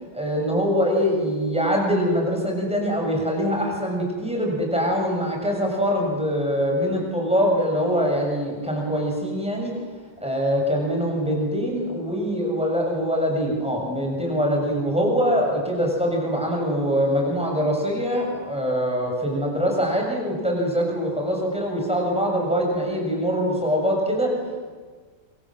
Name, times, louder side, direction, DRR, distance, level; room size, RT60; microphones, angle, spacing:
voice 1, 0.1-9.7 10.2-24.3, equal, 5° right, 0 dB, 7.0 m, -23 dB
27.0 x 25.0 x 7.6 m, 1.5 s
omnidirectional pair, 1.8 m